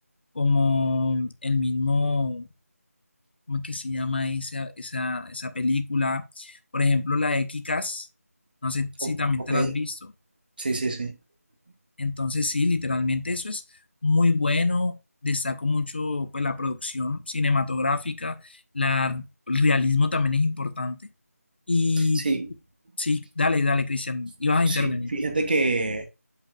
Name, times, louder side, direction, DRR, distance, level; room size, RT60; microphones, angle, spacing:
voice 1, 0.3-2.5 3.5-8.1 8.6-10.0 12.0-13.6 14.0-21.0 21.7-22.2 23.0-25.1, left 3 dB, 40° left, 0.8 m, -25 dB
voice 2, 9.4-9.7 10.6-11.2 22.1-22.5 24.7-26.0, right 2 dB, 35° right, 1.2 m, -26 dB
8.4 x 5.6 x 2.3 m
figure-of-eight pair, 165°, 8 cm